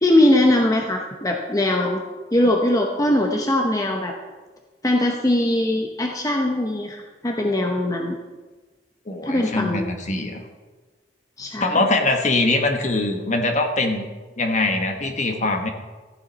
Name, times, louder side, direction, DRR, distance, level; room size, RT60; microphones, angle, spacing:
voice 1, 0.0-2.0 2.3-4.1 4.8-8.2 9.2-9.9 11.4-11.8, left 1 dB, 20° left, 1 dB, 0.9 m, -21 dB
voice 2, 9.1-10.4 11.6-14.0 14.4-15.7, left 2 dB, 45° left, 4 dB, 1.3 m, -22 dB
14.0 x 8.9 x 4.2 m, 1.3 s
head